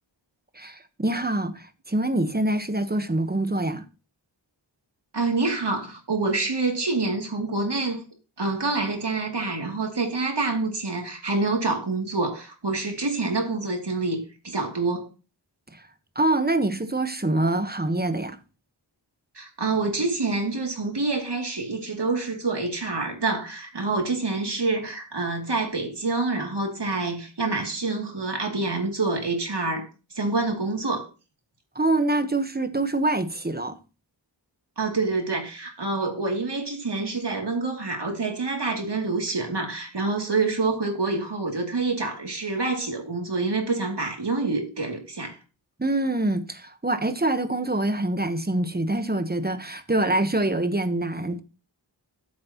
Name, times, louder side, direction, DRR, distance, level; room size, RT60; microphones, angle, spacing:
voice 1, 0.5-3.8 15.7-15.8 16.1-18.4 31.7-33.8 45.8-51.4, right 2 dB, 20° right, 1.1 m, -25 dB
voice 2, 5.1-8.0 8.4-15.1 19.3-29.9 30.1-31.0 34.8-45.4, right 3 dB, 60° right, 2.8 m, -27 dB
13.5 x 7.4 x 3.0 m
wide cardioid pair, 70°, 47 cm